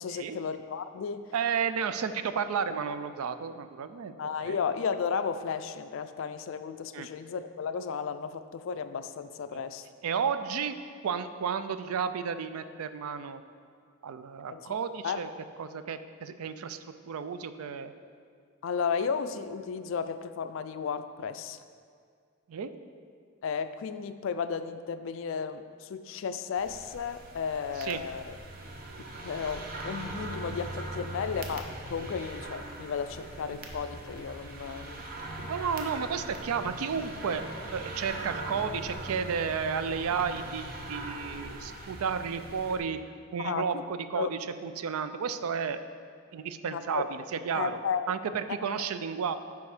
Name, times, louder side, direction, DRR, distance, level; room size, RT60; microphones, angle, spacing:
voice 1, 0.0-1.3 4.2-9.9 14.5-14.7 15.0-15.2 18.6-21.6 23.4-28.4 29.2-35.0 43.4-43.8 44.1-44.3 46.7-47.1 47.5-48.1, left 6 dB, 60° left, 11 dB, 0.3 m, -34 dB
voice 2, 1.3-4.1 4.4-4.6 6.9-7.1 9.5-9.6 10.0-10.7 11.0-13.4 14.0-15.3 15.6-16.8 17.1-17.9 22.5-22.7 27.8-28.0 35.4-37.4 37.7-43.0 43.3-45.8 46.3-47.8 48.1-49.3, right 6 dB, 80° right, 11 dB, 0.4 m, -32 dB
sound 1, 26.6-42.8, right 2 dB, 40° right, 0.7 m, -41 dB
9.3 x 3.5 x 4.9 m, 2.1 s
head